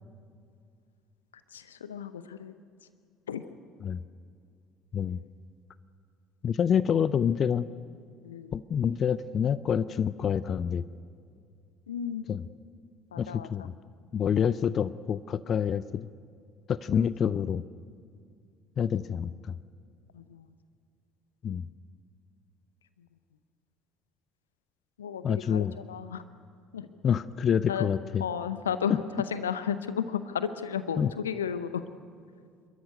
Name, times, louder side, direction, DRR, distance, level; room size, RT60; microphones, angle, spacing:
voice 1, 1.5-2.5 3.3-3.4 8.2-8.5 11.9-12.3 13.1-13.7 20.1-20.5 25.0-26.2 26.7-26.9 27.4-27.9 28.2-31.8, left 8 dB, 75° left, 13 dB, 0.7 m, -33 dB
voice 2, 6.4-7.7 8.5-10.8 12.3-12.4 13.2-13.7 14.1-16.1 16.7-17.6 18.8-19.6 21.4-21.7 25.2-25.7 27.0-28.3 31.0-31.1, left 8 dB, 40° left, 17 dB, 0.5 m, -27 dB
28.0 x 13.5 x 9.6 m, 2.3 s
figure-of-eight pair, 60°, 0 cm